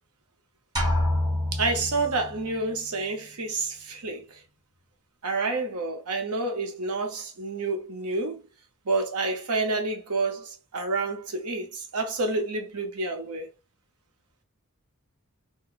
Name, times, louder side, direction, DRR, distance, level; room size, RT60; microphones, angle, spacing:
sound 1, 0.8-2.6, left 1 dB, 20° right, 0.8 m, -27 dB
voice 1, 1.5-4.4 5.2-8.4 8.8-13.5, right 3 dB, 85° right, 0.9 m, -29 dB
3.8 x 2.2 x 2.5 m
head